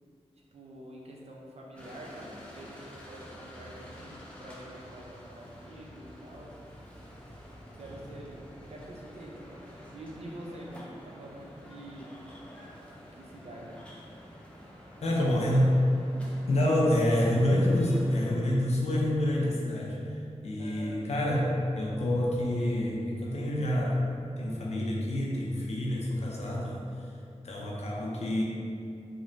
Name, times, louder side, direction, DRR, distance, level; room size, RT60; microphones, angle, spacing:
voice 1, 0.5-6.6 7.8-12.1 13.1-13.8 15.1-15.5 20.5-21.0, right 1 dB, 60° right, -2 dB, 0.4 m, -46 dB
sound 1, 1.8-18.3, equal, 10° left, 0.4 m, -48 dB
voice 2, 15.0-15.7 16.5-24.1 24.4-27.1 27.4-28.4, left 1 dB, 65° left, -3 dB, 0.5 m, -27 dB
3.0 x 2.1 x 2.5 m, 2.5 s
wide cardioid pair, 85°, 12 cm